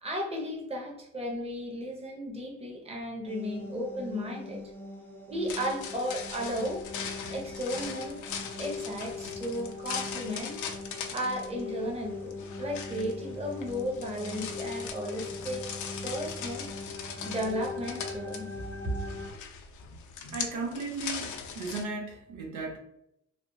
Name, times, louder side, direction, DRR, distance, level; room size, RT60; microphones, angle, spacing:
voice 1, 0.0-4.6 5.3-6.8 7.3-8.2 8.6-10.7 11.1-15.7 16.0-16.7 17.2-19.0, equal, 20° right, 0 dB, 0.9 m, -34 dB
sound 1, 3.3-19.3, left 3 dB, 5° left, 0.5 m, -41 dB
sound 2, 5.3-21.8, left 6 dB, 80° left, 0.5 m, -41 dB
voice 2, 20.3-22.8, right 3 dB, 75° right, 1 dB, 0.7 m, -36 dB
3.4 x 2.0 x 2.7 m, 0.79 s
cardioid pair, 90°, 30 cm